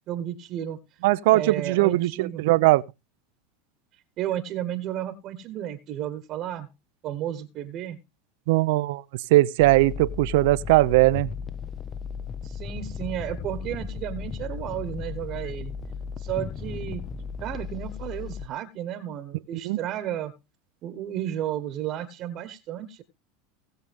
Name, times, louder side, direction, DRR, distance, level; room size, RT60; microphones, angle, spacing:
voice 1, 0.1-0.8 1.3-2.4 4.2-6.7 7.0-8.0 12.4-15.7 16.2-17.0 17.4-20.3 20.8-23.0, right 11 dB, 45° right, 1.3 m, -33 dB
voice 2, 1.0-2.8 8.5-9.0 9.3-11.3 19.6-19.8, right 19 dB, 70° right, 0.6 m, -20 dB
sound 1, 9.6-18.5, left 6 dB, 25° left, 1.0 m, -35 dB
18.5 x 6.8 x 3.6 m
supercardioid pair, 110°, 0 cm